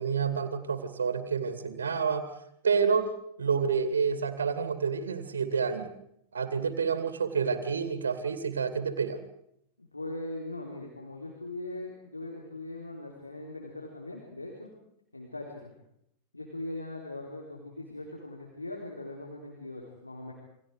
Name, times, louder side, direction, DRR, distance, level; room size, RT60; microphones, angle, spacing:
voice 1, 0.0-2.3 2.6-3.1 3.4-5.9 6.3-9.2, right 6 dB, 65° right, 9 dB, 2.4 m, -28 dB
voice 2, 9.8-14.7 15.1-15.7 16.3-20.3, left 2 dB, 85° left, -1 dB, 4.0 m, -40 dB
29.0 x 24.5 x 4.8 m, 0.74 s
figure-of-eight pair, 90°, 0 cm